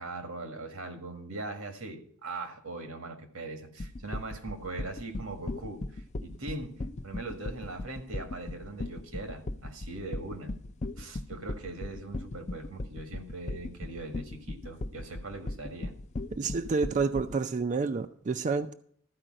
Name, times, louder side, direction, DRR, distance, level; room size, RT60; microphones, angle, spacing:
voice 1, 0.0-6.8 7.0-10.5 11.0-15.9, right 2 dB, 85° right, 6 dB, 1.8 m, -40 dB
sound 1, 3.8-17.4, left 2 dB, 35° left, 0.5 m, -37 dB
voice 2, 16.3-18.7, right 4 dB, 35° right, 9 dB, 0.4 m, -29 dB
13.5 x 5.0 x 7.6 m, 0.62 s
head